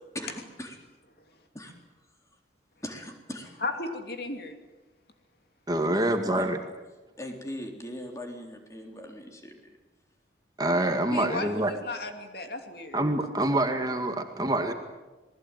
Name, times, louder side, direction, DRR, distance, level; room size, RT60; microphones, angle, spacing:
voice 1, 0.1-0.8 1.5-1.7 2.8-3.6 5.9-6.5 7.2-9.8 14.5-14.6, left 1 dB, 15° left, 2 dB, 3.7 m, -40 dB
voice 2, 3.6-4.6 11.1-13.0, left 2 dB, 60° left, 5 dB, 2.8 m, -35 dB
voice 3, 5.7-6.6 10.6-11.7 12.9-14.7, right 1 dB, 20° right, 5 dB, 2.0 m, -26 dB
28.0 x 20.5 x 9.2 m, 1.2 s
head